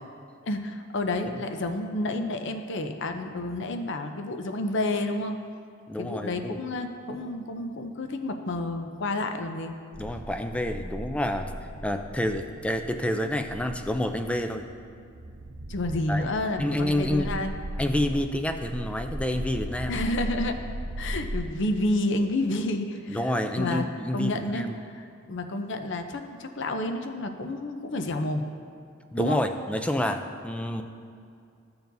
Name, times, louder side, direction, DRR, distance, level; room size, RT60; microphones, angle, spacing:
voice 1, 0.4-5.4 6.0-9.7 15.7-17.6 19.9-20.6 21.0-23.9 24.1-28.4 29.2-29.4, left 2 dB, 65° left, 6 dB, 0.6 m, -30 dB
voice 2, 5.9-6.6 10.0-11.5 11.8-14.7 16.1-16.3 16.6-17.3 17.8-20.0 23.1-24.8 29.1-30.8, left 1 dB, 5° left, 6 dB, 0.4 m, -28 dB
sound 1, 9.9-21.5, right 1 dB, 80° right, 0.6 m, -37 dB
15.0 x 6.9 x 2.7 m, 2.4 s
head